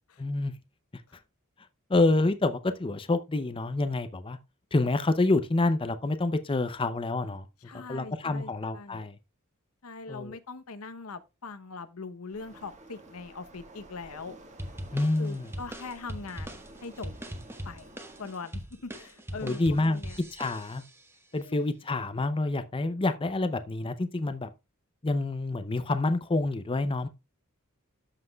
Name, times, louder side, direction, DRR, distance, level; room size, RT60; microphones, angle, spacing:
voice 1, 0.2-0.5 1.9-4.4 4.7-7.5 7.7-9.1 10.1-10.4 14.9-15.5 19.4-20.0 20.3-20.8 21.3-24.5 25.0-27.1, left 2 dB, 25° left, 0.6 m, -27 dB
voice 2, 7.6-9.1 9.8-14.4 15.2-17.1 17.6-17.9 18.2-20.2 21.4-21.7, left 4 dB, 80° left, 0.8 m, -42 dB
Waves surf, 12.3-18.3, right 2 dB, 35° right, 1.7 m, -52 dB
sound 1, 14.6-21.0, equal, 10° right, 1.1 m, -41 dB
13.0 x 5.8 x 2.3 m
head